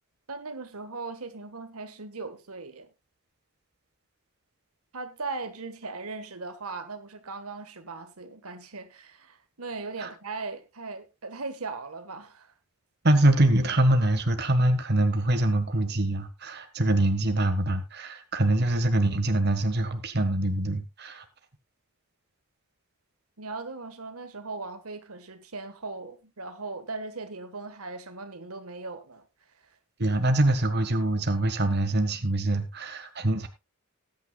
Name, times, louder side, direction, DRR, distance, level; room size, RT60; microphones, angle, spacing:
voice 1, 0.3-2.9 4.9-12.5 23.4-29.8, right 3 dB, 85° right, 1.6 m, -38 dB
voice 2, 13.0-21.2 30.0-33.5, right 1 dB, 50° right, 1.6 m, -24 dB
19.5 x 9.5 x 2.4 m
head